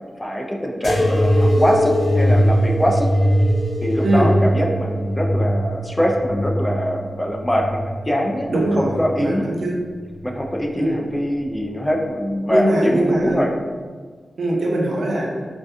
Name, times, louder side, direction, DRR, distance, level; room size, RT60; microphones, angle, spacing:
voice 1, 0.2-3.1 3.8-9.4 10.2-13.5, equal, 15° left, 1 dB, 0.3 m, -23 dB
sound 1, 0.8-8.0 8.6-9.3 10.1-10.6 11.6-11.7, equal, 80° left, 1.0 m, -20 dB
voice 2, 4.0-4.4 8.5-9.9 10.8-11.0 12.5-13.5 14.4-15.5, right 1 dB, 80° right, -2 dB, 0.5 m, -21 dB
2.4 x 2.2 x 2.6 m, 1.6 s
cardioid pair, 65°, 0 cm